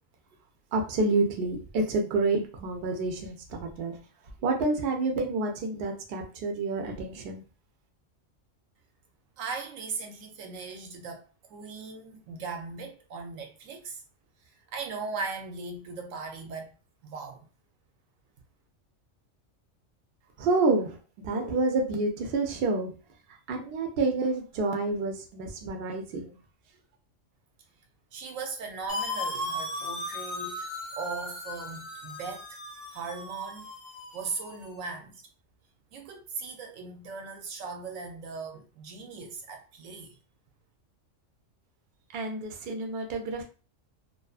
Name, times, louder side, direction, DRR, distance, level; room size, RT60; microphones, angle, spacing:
voice 1, 0.7-4.0 4.4-7.4 20.4-21.0 21.2-22.9 23.5-26.4 42.1-43.4, right 3 dB, 60° right, 0.7 m, -28 dB
voice 2, 9.4-14.0 14.7-16.7 17.0-17.5 28.1-32.6 32.9-33.7 34.1-35.2 35.9-40.1, right 4 dB, 80° right, 1.0 m, -38 dB
sound 1, 28.9-34.7, left 1 dB, 30° left, 0.5 m, -36 dB
2.5 x 2.3 x 2.3 m
omnidirectional pair, 1.3 m